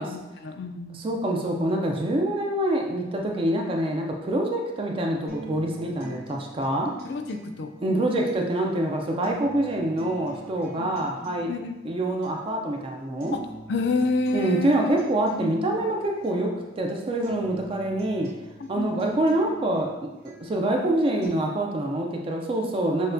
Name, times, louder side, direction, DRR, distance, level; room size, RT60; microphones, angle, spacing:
voice 1, 0.0-1.0 7.0-8.0 10.8-10.9 11.5-11.8 13.3-13.4 13.7-14.9 15.3-15.8 18.6-19.1, left 3 dB, 65° left, 7 dB, 0.4 m, -29 dB
voice 2, 0.9-7.0 7.8-11.5 11.8-13.4 14.3-18.3 18.7-23.1, right 1 dB, 30° right, 1 dB, 0.4 m, -26 dB
sound 1, 5.3-21.3, right 1 dB, 60° right, 1.2 m, -45 dB
6.2 x 2.2 x 2.6 m, 1.0 s
head